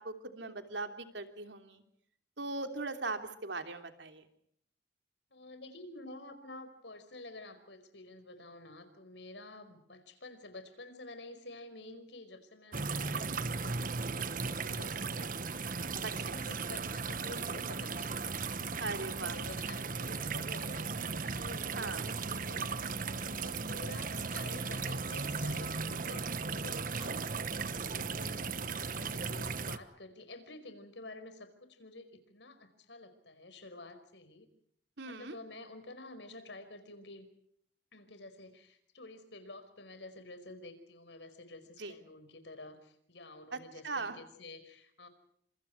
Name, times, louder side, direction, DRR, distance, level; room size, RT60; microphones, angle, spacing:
voice 1, 0.0-1.8 2.4-4.2 16.0-16.3 18.8-19.4 21.7-22.1 35.0-35.4 41.8-41.9 43.5-43.6 43.8-44.2, right 3 dB, 85° right, 7 dB, 3.2 m, -39 dB
voice 2, 5.3-13.5 14.2-15.7 16.0-18.7 19.0-28.6 28.9-34.5 35.0-37.2 37.9-45.1, left 2 dB, 85° left, 10 dB, 5.1 m, -50 dB
sound 1, 12.7-29.8, right 4 dB, 50° right, 1.3 m, -36 dB
29.5 x 27.0 x 4.7 m, 0.68 s
head